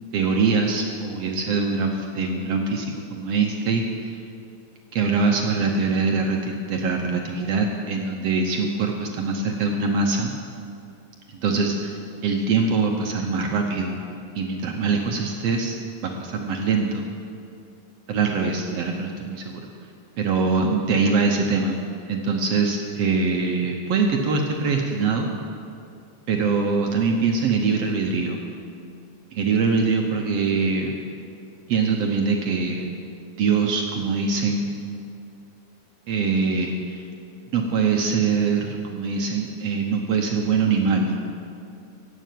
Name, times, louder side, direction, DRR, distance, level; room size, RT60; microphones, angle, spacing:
voice 1, 0.1-4.1 4.9-10.3 11.3-14.0 14.4-15.8 16.0-17.0 18.1-19.6 20.2-21.8 22.1-25.3 26.3-28.4 29.3-30.9 31.7-32.9 33.4-34.7 36.1-37.0 37.5-41.2, right 4 dB, 65° right, 2 dB, 1.6 m, -23 dB
16.0 x 7.6 x 9.2 m, 2.5 s
omnidirectional pair, 3.9 m